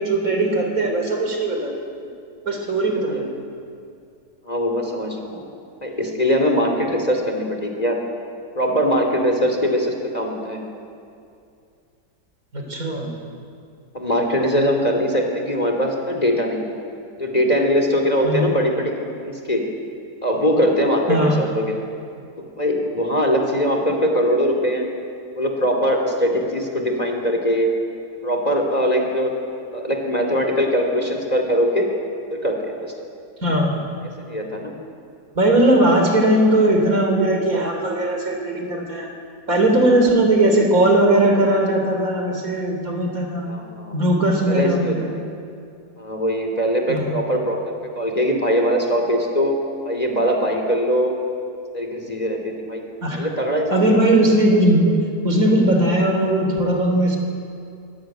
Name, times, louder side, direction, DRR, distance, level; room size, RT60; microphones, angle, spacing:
voice 1, 0.0-2.0 2.5-3.3 12.5-13.1 18.2-18.5 21.1-21.4 33.4-33.8 35.4-39.1 39.5-43.5 43.9-45.1 46.9-47.3 53.0-53.3 53.7-55.0 55.2-57.2, right 1 dB, 55° right, 3 dB, 3.8 m, -19 dB
voice 2, 4.4-5.4 5.8-8.0 8.5-10.6 13.9-16.8 17.2-19.6 20.2-21.8 22.6-24.8 25.4-27.7 28.2-29.3 29.7-31.9 32.3-32.9 34.2-34.7 43.5-44.0 44.5-45.0 46.0-49.5 49.8-51.1 51.7-52.8 53.1-53.8, equal, 25° left, 3 dB, 3.0 m, -21 dB
23.0 x 18.5 x 9.2 m, 2.4 s
omnidirectional pair, 1.8 m